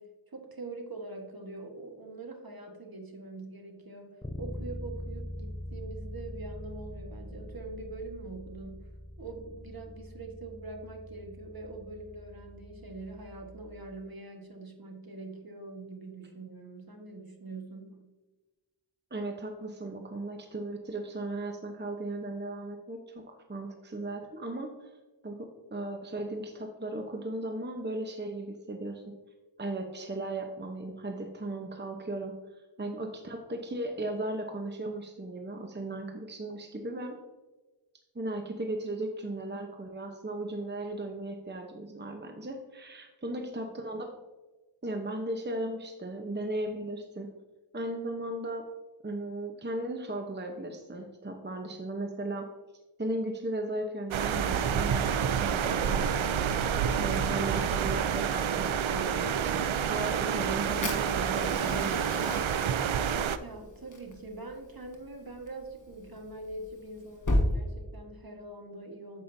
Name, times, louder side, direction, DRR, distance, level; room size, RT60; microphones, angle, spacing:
voice 1, 0.0-8.8 9.2-18.0 32.8-33.0 43.3-43.4 63.4-69.2, right 2 dB, 50° right, 3 dB, 1.5 m, -44 dB
Bass guitar, 4.2-14.0, left 1 dB, 10° left, 0.5 m, -43 dB
voice 2, 19.1-24.9 25.2-29.0 29.6-32.3 32.8-37.2 38.1-44.1 44.8-47.3 47.7-48.6 49.0-52.5 53.0-56.7 57.0-62.4, right 2 dB, 20° right, 4 dB, 0.9 m, -36 dB
sound 1, 54.1-63.4, right 8 dB, 80° right, 0.6 m, -28 dB
Fire, 60.8-67.5, left 1 dB, 40° left, 1.4 m, -35 dB
9.1 x 7.5 x 2.7 m, 1.2 s
wide cardioid pair, 40°, 47 cm